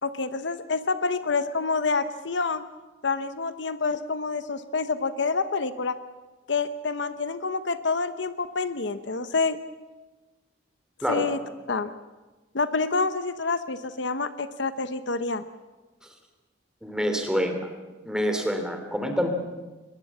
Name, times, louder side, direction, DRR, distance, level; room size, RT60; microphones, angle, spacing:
voice 1, 0.0-2.6 3.0-6.0 6.5-9.6 11.1-11.4 11.7-11.9 12.5-15.4, left 4 dB, 70° left, 11 dB, 1.0 m, -27 dB
voice 2, 16.8-17.7 18.0-19.3, equal, 5° right, 5 dB, 3.0 m, -27 dB
22.5 x 21.0 x 7.4 m, 1.2 s
head